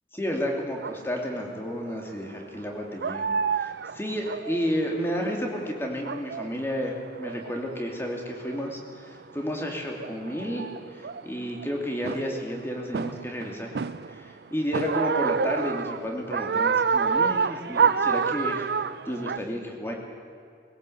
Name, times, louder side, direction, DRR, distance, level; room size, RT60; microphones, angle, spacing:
voice 1, 0.1-3.3 3.5-8.8 9.3-10.6 11.0-13.7 14.1-18.7 19.1-19.9, equal, 15° left, 0 dB, 2.8 m, -31 dB
sound 1, 0.8-1.0 1.8-2.1 2.6-2.7 3.0-5.6 5.9-6.5 6.9-7.8 8.4-8.8 9.6-9.7 10.0-11.7 12.0-12.5 12.9-14.3 14.7-19.4, right 6 dB, 70° right, 0.5 m, -28 dB
21.0 x 17.5 x 8.0 m, 2.4 s
head